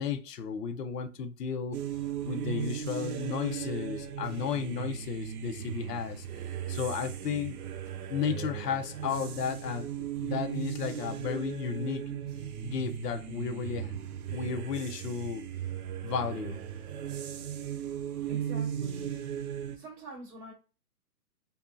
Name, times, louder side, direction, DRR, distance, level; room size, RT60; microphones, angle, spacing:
voice 1, 0.0-1.8 2.2-6.2 6.7-7.6 8.1-12.2 12.6-14.0 14.3-15.5 16.0-16.6, left 6 dB, 85° left, 0.6 m, -33 dB
sound 1, 1.7-19.8, right 9 dB, 70° right, 0.5 m, -37 dB
voice 2, 18.3-19.1 19.7-20.5, right 1 dB, 15° right, 1.0 m, -46 dB
2.6 x 2.2 x 2.4 m
hypercardioid pair, 155°, 47 cm